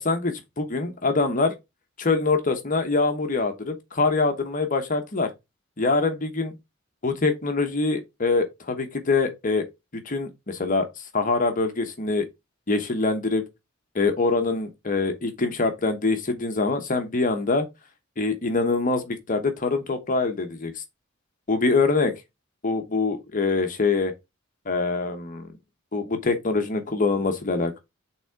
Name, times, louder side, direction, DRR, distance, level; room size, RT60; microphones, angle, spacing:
voice 1, 0.0-1.5 2.0-5.3 5.8-6.6 7.0-9.6 9.9-12.3 12.7-13.4 13.9-17.7 18.2-20.8 21.5-22.1 22.6-24.1 24.7-25.5 25.9-27.8, left 3 dB, 40° left, 1.0 m, -24 dB
6.0 x 3.8 x 4.5 m
head